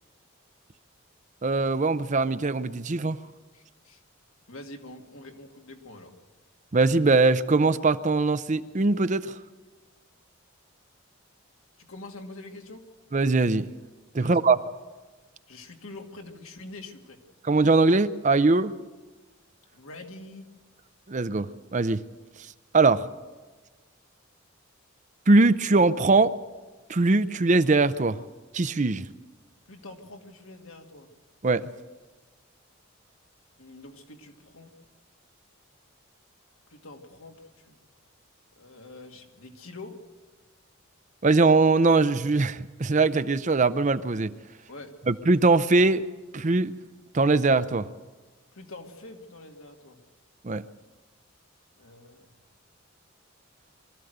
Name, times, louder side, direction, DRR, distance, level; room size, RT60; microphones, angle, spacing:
voice 1, 1.4-3.2 6.7-9.4 13.1-13.7 14.1-14.6 17.4-18.7 21.1-22.0 22.7-23.1 25.3-26.3 26.9-28.2 28.5-29.1 31.4-31.7 41.2-44.3 45.1-46.0 46.3-46.7 47.1-47.9 50.4-50.6, right 3 dB, 35° right, 13 dB, 0.6 m, -21 dB
voice 2, 3.5-4.0 4.5-6.1 11.8-12.8 14.2-14.5 15.5-17.2 19.7-20.5 29.7-31.1 33.6-34.7 36.7-37.8 38.6-40.0 44.7-45.1 48.5-50.0 51.8-52.3, left 2 dB, 80° left, 3 dB, 2.3 m, -45 dB
23.5 x 14.0 x 8.0 m, 1.3 s
head